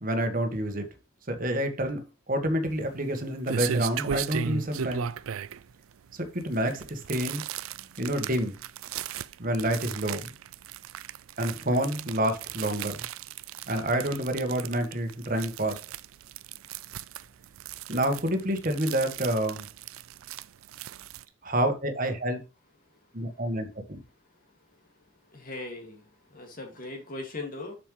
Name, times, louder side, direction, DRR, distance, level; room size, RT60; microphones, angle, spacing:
voice 1, 0.0-0.8 1.3-2.0 2.3-5.1 6.1-7.4 8.0-8.6 9.4-10.3 11.4-13.0 13.7-15.8 17.9-19.6 21.4-22.4 23.1-24.0, right 1 dB, 40° right, 1.5 m, -28 dB
sound 1, 2.7-21.2, right 8 dB, 85° right, 0.4 m, -37 dB
voice 2, 25.3-26.0 26.3-27.7, left 2 dB, 45° left, 2.1 m, -38 dB
7.2 x 6.8 x 3.2 m
head